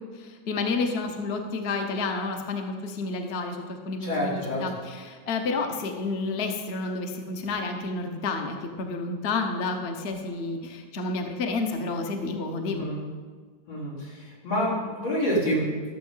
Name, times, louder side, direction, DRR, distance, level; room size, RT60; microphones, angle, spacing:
voice 1, 0.1-12.9, left 3 dB, 40° left, 4 dB, 1.1 m, -30 dB
voice 2, 4.0-4.6 12.6-13.0 13.7-15.7, equal, 85° left, -8 dB, 4.8 m, -28 dB
13.0 x 7.5 x 5.6 m, 1.5 s
omnidirectional pair, 2.0 m